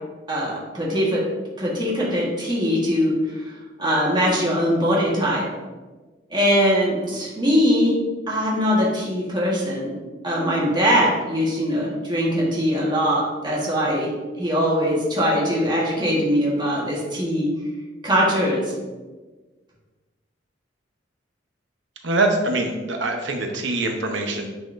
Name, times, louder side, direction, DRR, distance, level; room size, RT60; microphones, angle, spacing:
voice 1, 0.3-1.2 1.6-3.4 3.8-5.5 6.3-7.9 8.3-9.9 10.2-14.1 14.4-17.5 18.0-18.7, equal, 25° right, -5 dB, 1.5 m, -21 dB
voice 2, 22.0-24.5, right 2 dB, 80° right, 3 dB, 0.9 m, -23 dB
9.4 x 4.3 x 2.6 m, 1.3 s
head